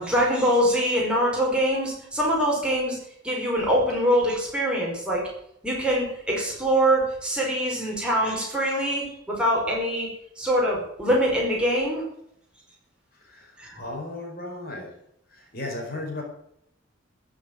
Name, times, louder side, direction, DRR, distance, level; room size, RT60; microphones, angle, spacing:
voice 1, 0.0-3.0 3.2-5.2 5.6-10.1 10.4-12.0 13.6-13.7, equal, 5° right, -4 dB, 5.1 m, -24 dB
voice 2, 13.2-13.5 13.8-14.9 15.3-16.2, left 2 dB, 50° left, 1 dB, 4.5 m, -35 dB
15.0 x 7.4 x 9.6 m, 0.73 s
head